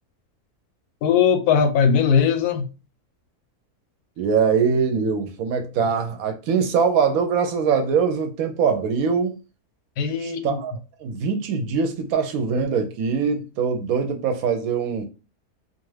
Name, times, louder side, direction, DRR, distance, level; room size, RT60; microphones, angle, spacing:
voice 1, 1.0-2.7 10.0-10.6, left 7 dB, 85° left, 1.1 m, -19 dB
voice 2, 4.2-9.4 10.2-10.7 11.0-15.1, right 6 dB, 75° right, 1.0 m, -22 dB
2.5 x 2.4 x 3.1 m
omnidirectional pair, 1.6 m